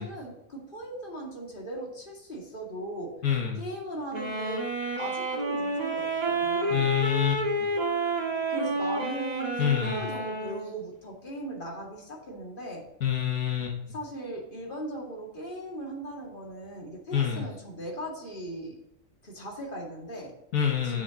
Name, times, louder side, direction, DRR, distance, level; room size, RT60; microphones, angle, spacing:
voice 1, 0.0-3.2 3.6-4.6 5.0-7.0 8.5-12.8 13.9-18.8 19.2-20.3 20.8-21.0, right 1 dB, 40° left, -2 dB, 2.4 m, -38 dB
voice 2, 3.2-3.6 6.7-7.7 9.6-10.1 13.0-13.7 17.1-17.5 20.5-21.0, left 8 dB, 90° left, 2 dB, 1.7 m, -27 dB
sound 1, 4.1-10.7, right 1 dB, 30° right, 1.5 m, -30 dB
10.5 x 7.2 x 2.9 m, 0.84 s
omnidirectional pair, 1.4 m